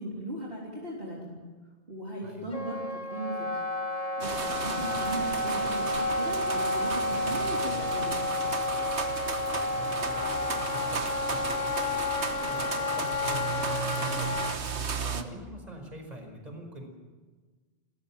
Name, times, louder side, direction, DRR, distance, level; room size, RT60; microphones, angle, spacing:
voice 1, 0.0-1.5 1.9-3.6 4.2-8.3 15.1-15.3, right 1 dB, 55° right, -3 dB, 3.8 m, -38 dB
Wind instrument woodwind instrument, 2.5-14.6, left 2 dB, 35° left, 1.3 m, -31 dB
sound 1, 4.2-15.2, right 5 dB, 90° right, 1.6 m, -35 dB
voice 2, 9.4-14.4 15.0-16.9, equal, 35° right, 3 dB, 5.1 m, -44 dB
29.0 x 14.5 x 7.5 m, 1.4 s
omnidirectional pair, 1.1 m